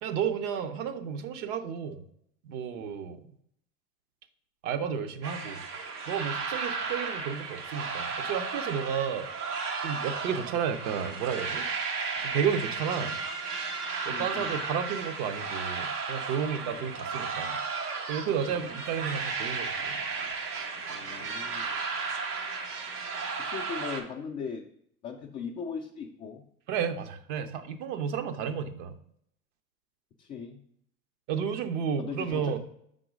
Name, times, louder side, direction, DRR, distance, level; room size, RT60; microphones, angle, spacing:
voice 1, 0.0-2.0 2.4-3.2 4.6-5.6 6.1-9.3 9.8-11.7 12.2-13.2 14.1-17.6 18.1-20.0 26.7-29.0 31.3-32.6, right 7 dB, 55° right, 8 dB, 0.8 m, -32 dB
sound 1, 5.2-24.0, right 4 dB, 80° right, 1.2 m, -34 dB
voice 2, 14.1-14.6 16.6-16.9 18.5-18.7 21.0-21.7 23.4-24.7 25.0-26.4 30.2-30.6 32.0-32.6, left 6 dB, 20° left, 1 dB, 0.3 m, -39 dB
5.9 x 3.8 x 5.0 m, 0.71 s
hypercardioid pair, 90°, 46 cm